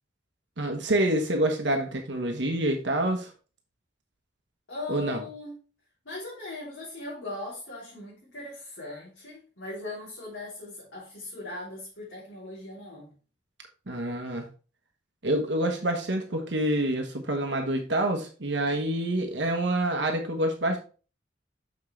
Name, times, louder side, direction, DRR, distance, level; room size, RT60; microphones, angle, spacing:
voice 1, 0.6-3.3 4.9-5.2 13.9-14.4 15.2-20.8, right 1 dB, 65° right, 1.2 m, -27 dB
voice 2, 4.7-5.5 6.0-13.1, left 2 dB, 90° left, 3.5 m, -39 dB
6.5 x 6.1 x 3.3 m
head